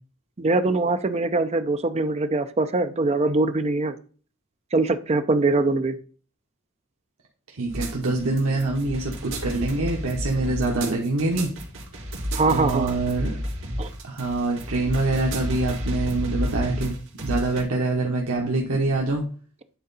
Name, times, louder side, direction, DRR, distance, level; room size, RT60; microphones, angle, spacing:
voice 1, 0.4-4.0 4.7-6.0 12.3-12.9 13.8-13.9, right 3 dB, 30° right, 9 dB, 0.6 m, -22 dB
voice 2, 7.5-11.5 12.5-13.4 14.0-19.2, right 2 dB, 85° right, -1 dB, 1.1 m, -25 dB
sound 1, 7.7-17.6, equal, 65° right, 2.0 m, -31 dB
9.1 x 4.0 x 4.0 m, 0.41 s
head